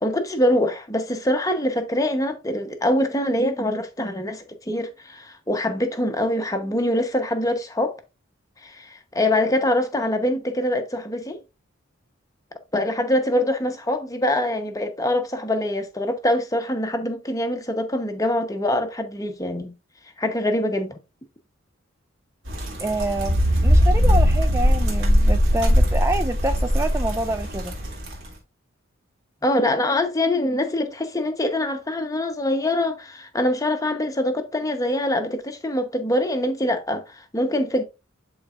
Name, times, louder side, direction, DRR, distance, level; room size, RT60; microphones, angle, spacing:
voice 1, 0.0-7.9 8.6-11.4 12.7-19.7 20.2-21.0 29.4-37.8, left 1 dB, 15° left, 0.9 m, -24 dB
sound 1, 22.5-28.1, equal, 60° right, 2.2 m, -20 dB
voice 2, 22.8-27.7, right 2 dB, 15° right, 0.3 m, -27 dB
11.5 x 4.0 x 2.5 m
head